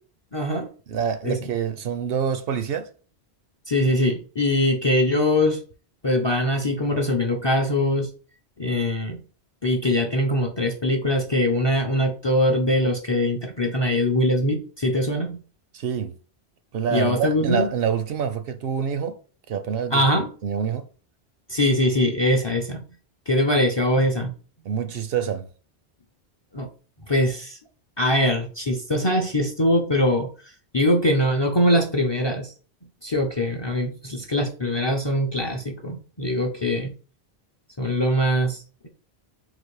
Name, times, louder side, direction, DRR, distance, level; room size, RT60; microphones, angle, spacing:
voice 1, 0.3-0.7 1.2-1.4 3.7-5.6 6.0-8.1 8.6-9.2 9.6-15.4 16.9-17.7 19.9-20.3 21.5-22.8 23.3-24.3 26.5-26.7 27.1-27.6 28.0-30.3 30.7-32.5 33.0-36.9 37.8-38.9, left 1 dB, 30° left, 0.5 m, -22 dB
voice 2, 0.9-2.9 15.7-16.1 16.7-19.2 19.5-20.8 24.6-25.5, right 7 dB, 70° right, 0.8 m, -26 dB
4.0 x 2.5 x 4.6 m
omnidirectional pair, 1.1 m